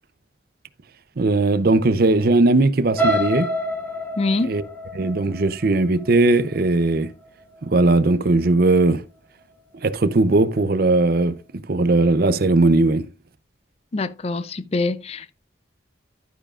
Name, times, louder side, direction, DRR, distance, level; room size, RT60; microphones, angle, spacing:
voice 1, 1.2-3.5 4.4-4.6 5.0-7.1 7.6-9.0 9.8-11.3 11.7-13.0, right 2 dB, 50° right, 0.6 m, -18 dB
sound 1, 3.0-6.9 7.4-7.7 8.1-8.2, equal, 10° left, 2.7 m, -27 dB
voice 2, 4.2-4.6 13.9-15.3, left 3 dB, 35° left, 0.4 m, -24 dB
11.0 x 9.9 x 2.4 m
head